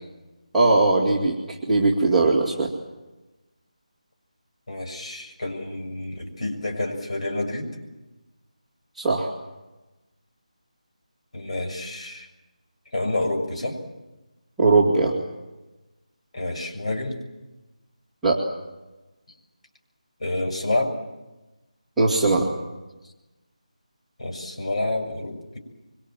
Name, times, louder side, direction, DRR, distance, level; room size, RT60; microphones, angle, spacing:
voice 1, 0.5-1.4 1.7-2.7 9.0-9.3 14.6-15.2 18.2-18.4 22.0-22.5, right 3 dB, 5° right, -10 dB, 2.2 m, -19 dB
voice 2, 4.7-7.7 11.3-12.3 12.9-13.8 16.3-17.2 20.2-21.0 24.2-25.6, left 2 dB, 55° left, 2 dB, 6.8 m, -28 dB
25.0 x 24.5 x 7.6 m, 1.1 s
figure-of-eight pair, 175°, 4 cm